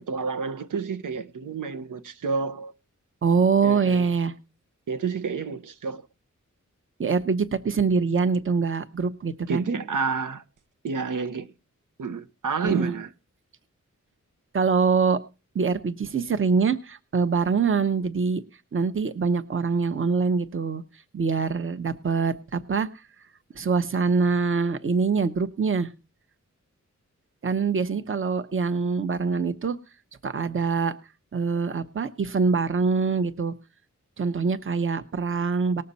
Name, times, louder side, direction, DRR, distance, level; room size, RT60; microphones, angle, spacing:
voice 1, 0.1-2.7 3.6-4.1 4.9-6.1 9.5-10.4 10.8-11.5 12.0-13.1, right 5 dB, 85° right, 0.9 m, -29 dB
voice 2, 3.2-4.3 7.0-9.6 12.6-12.9 14.5-15.2 15.5-18.4 18.7-20.8 21.1-22.9 23.5-25.9 27.4-29.8 30.2-30.9 31.3-33.5 34.2-35.8, right 5 dB, 40° right, 0.9 m, -24 dB
19.5 x 6.6 x 4.1 m
wide cardioid pair, 130°, 30 cm